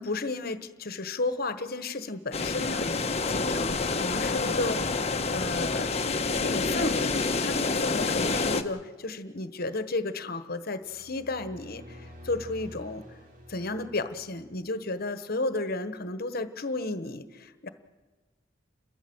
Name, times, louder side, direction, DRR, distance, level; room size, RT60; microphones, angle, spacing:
voice 1, 0.0-5.9 6.4-13.0 13.5-17.7, left 2 dB, 55° left, 10 dB, 1.3 m, -33 dB
sound 1, 2.3-8.6, left 3 dB, 35° left, 1.1 m, -28 dB
sound 2, 10.8-14.7, equal, 50° right, 2.9 m, -48 dB
30.0 x 13.5 x 8.0 m, 1.3 s
head